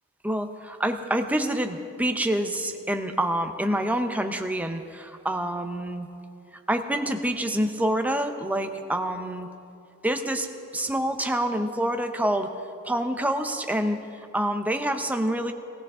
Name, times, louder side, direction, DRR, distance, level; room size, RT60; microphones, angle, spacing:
voice 1, 0.2-6.1 6.7-9.5 10.0-12.5 12.8-14.0 14.3-15.5, right 1 dB, 5° right, 5 dB, 0.7 m, -27 dB
18.5 x 16.5 x 3.7 m, 2.5 s
head